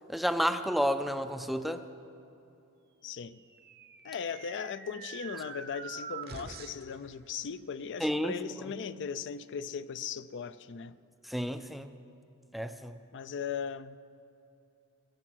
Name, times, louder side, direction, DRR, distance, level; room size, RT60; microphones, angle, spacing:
voice 1, 0.1-1.8 8.0-8.4 11.3-11.9 12.5-13.0, equal, ahead, 0.4 m, -30 dB
voice 2, 3.0-3.4 4.0-11.0 13.1-14.0, left 6 dB, 55° left, 0.4 m, -38 dB
sound 1, 3.3-7.0, right 5 dB, 45° right, 0.7 m, -45 dB
21.0 x 8.7 x 6.2 m
head